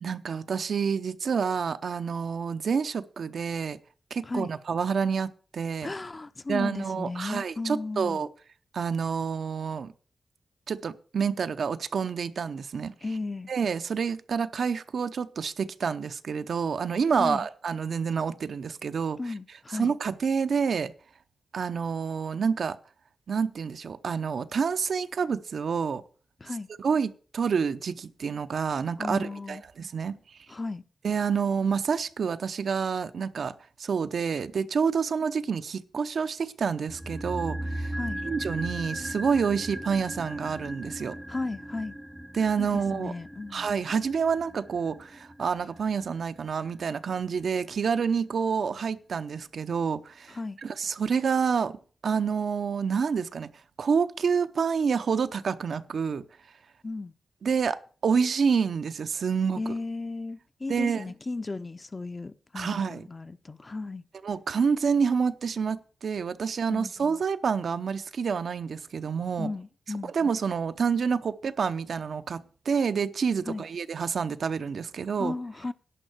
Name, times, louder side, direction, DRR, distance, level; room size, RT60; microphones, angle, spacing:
voice 1, 0.0-3.8 4.1-5.9 6.5-8.3 8.7-9.9 10.7-12.9 13.5-19.2 19.7-20.9 21.5-22.8 23.3-26.0 26.8-30.2 31.0-33.5 33.8-37.9 38.2-41.2 42.3-43.1 43.5-53.5 53.8-56.2 57.4-59.6 60.7-61.0 62.5-63.1 64.2-69.5 70.1-75.3, right 6 dB, 75° right, 0.7 m, -28 dB
voice 2, 5.8-8.2 13.0-13.5 17.2-17.5 19.2-19.9 26.4-26.7 29.0-29.6 30.5-30.8 37.9-38.2 41.3-41.9 42.6-43.7 50.3-50.6 56.8-57.1 59.6-64.0 66.7-67.2 69.4-70.1 73.5-73.7 75.2-75.7, left 3 dB, 35° left, 0.6 m, -35 dB
sound 1, 36.9-47.1 47.4-47.5, right 1 dB, 5° right, 0.6 m, -38 dB
11.0 x 5.4 x 7.9 m
cardioid pair, 70°, 0 cm